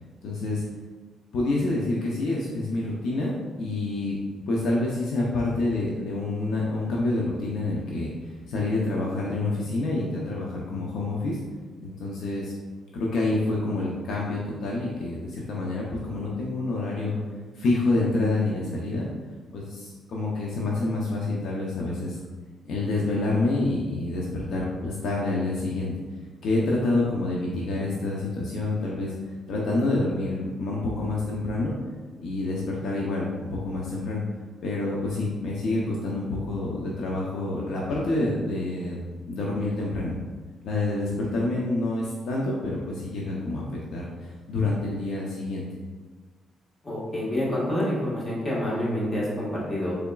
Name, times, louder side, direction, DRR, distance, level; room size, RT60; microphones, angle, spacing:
voice 1, 0.2-0.6 1.3-4.2 4.5-11.4 11.8-12.5 12.9-17.2 17.5-19.1 19.5-22.2 22.7-25.9 26.4-29.1 29.5-31.7 32.2-34.2 34.6-39.0 39.3-40.2 40.6-43.6 43.9-45.7, left 2 dB, 70° left, -4 dB, 0.6 m, -27 dB
voice 2, 46.8-49.9, left 1 dB, 30° left, -5 dB, 1.3 m, -27 dB
3.8 x 3.4 x 2.3 m, 1.3 s
cardioid pair, 90°, 0 cm